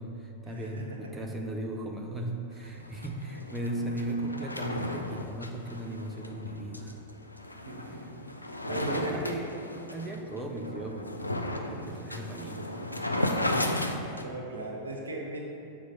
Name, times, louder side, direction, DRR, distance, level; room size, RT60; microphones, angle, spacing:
voice 1, 0.0-7.0 7.9-8.2 8.7-9.4 9.9-11.3 11.7-12.7, right 1 dB, 10° right, 0 dB, 0.6 m, -37 dB
sound 1, 2.6-14.2, left 1 dB, 85° left, 0.4 m, -35 dB
voice 2, 7.6-8.1 8.6-9.5 11.5-11.7 14.2-15.4, right 2 dB, 75° right, -1 dB, 1.0 m, -37 dB
6.1 x 4.4 x 5.5 m, 2.7 s
figure-of-eight pair, 90°, 0 cm